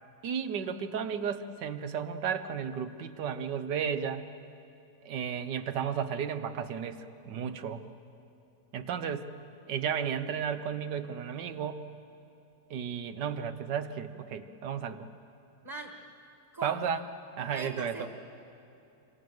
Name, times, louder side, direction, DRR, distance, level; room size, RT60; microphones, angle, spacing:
voice 1, 0.2-4.3 5.0-7.8 8.7-9.3 9.7-11.8 12.7-15.1 16.6-17.0 17.4-18.1, right 7 dB, 80° right, 11 dB, 1.7 m, -33 dB
voice 2, 15.6-16.0 16.5-16.9 17.5-18.1, right 2 dB, 15° right, 3 dB, 1.5 m, -40 dB
27.5 x 25.0 x 7.9 m, 2.7 s
omnidirectional pair, 1.8 m